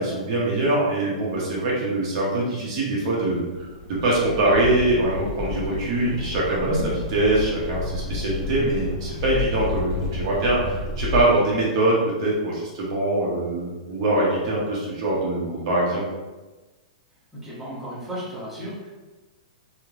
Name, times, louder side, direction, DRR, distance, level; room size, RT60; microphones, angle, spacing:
voice 1, 0.0-3.4 3.9-16.0, right 2 dB, 45° right, -5 dB, 0.7 m, -23 dB
sound 1, 3.5-11.2, left 3 dB, 45° left, 1.0 m, -31 dB
voice 2, 17.3-18.9, equal, 5° right, -10 dB, 0.8 m, -33 dB
3.1 x 2.1 x 2.4 m, 1.2 s
hypercardioid pair, 155°, 4 cm